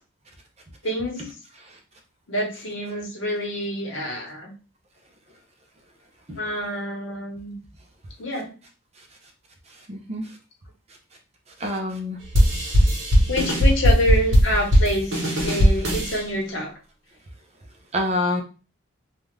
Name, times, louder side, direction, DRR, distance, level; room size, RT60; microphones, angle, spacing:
voice 1, 0.8-1.3 2.3-4.5 6.4-7.6 8.2-8.5 13.3-15.1 15.4-16.7, equal, 70° left, 0 dB, 1.0 m, -26 dB
voice 2, 9.9-10.3 11.6-12.2 17.9-18.4, left 1 dB, 30° right, 2 dB, 0.5 m, -26 dB
sound 1, 12.3-16.2, equal, 60° right, 1.1 m, -18 dB
2.5 x 2.3 x 3.2 m, 0.34 s
head